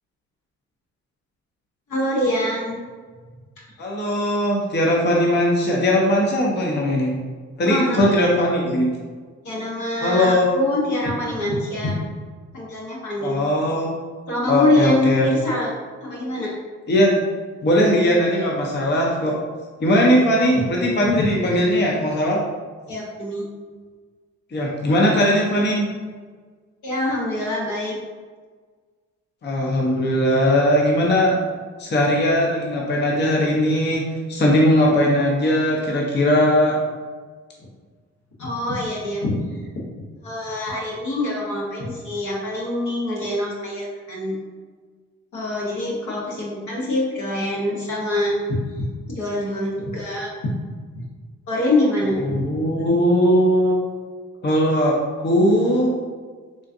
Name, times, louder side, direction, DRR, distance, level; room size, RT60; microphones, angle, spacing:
voice 1, 1.9-2.8 7.7-8.1 9.4-12.0 12.5-13.3 14.3-15.7 16.0-16.5 20.0-20.5 22.9-23.5 26.8-28.0 38.4-39.6 40.2-44.4 45.3-50.5 50.9-51.0 51.5-52.4, left 1 dB, 75° left, -4 dB, 1.0 m, -25 dB
voice 2, 3.8-7.1 7.6-8.9 10.0-10.5 13.2-13.9 14.5-15.3 16.9-17.1 17.6-19.4 19.8-22.4 24.5-25.9 29.4-31.4 31.8-36.8 52.2-53.8 54.4-55.9, equal, 35° left, -2 dB, 0.6 m, -19 dB
3.8 x 2.5 x 2.6 m, 1.5 s
cardioid pair, 75°, 31 cm